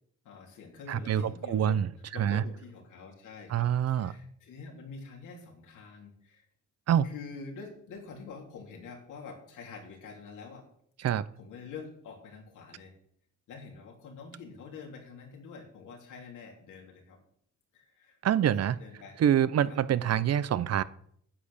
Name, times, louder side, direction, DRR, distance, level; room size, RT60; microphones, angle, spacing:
voice 1, 0.2-1.8 2.1-6.5 7.0-10.7 11.4-12.9 13.5-17.2 17.7-19.2 19.7-19.8, left 5 dB, 80° left, 1 dB, 3.7 m, -46 dB
voice 2, 0.9-2.4 3.5-4.1 6.9-7.1 11.0-11.2 18.2-18.8 19.2-20.8, right 9 dB, 55° right, 17 dB, 0.7 m, -26 dB
9.8 x 8.6 x 7.1 m, 0.67 s
cardioid pair, 90°, 30 cm